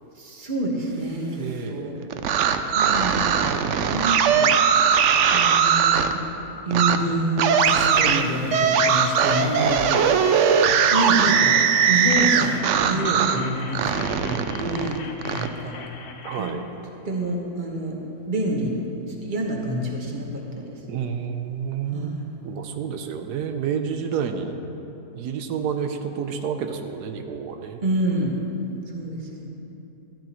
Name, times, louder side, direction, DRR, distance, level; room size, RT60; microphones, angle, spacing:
voice 1, 0.2-1.9 2.7-3.4 3.9-4.5 5.3-6.2 6.7-9.8 10.9-11.5 11.9-15.0 15.3-15.7 16.4-16.6 17.0-18.0 18.3-18.7 19.2-20.3 20.5-20.8 21.9-22.3 27.8-28.4 28.9-29.5, right 1 dB, 30° right, -1 dB, 1.4 m, -27 dB
voice 2, 1.4-2.2 9.9-10.2 16.2-16.6 20.9-22.2 22.4-24.6 25.1-27.8, right 7 dB, 90° right, 6 dB, 1.2 m, -29 dB
sound 1, 2.1-6.1 6.7-7.0 7.4-13.4 13.7-15.5, right 7 dB, 70° right, 0.7 m, -20 dB
sound 2, 7.6-12.6, left 1 dB, 40° left, 1.5 m, -42 dB
sound 3, 8.5-16.5, left 5 dB, 75° left, 1.3 m, -41 dB
13.5 x 13.0 x 3.0 m, 2.9 s
omnidirectional pair, 1.7 m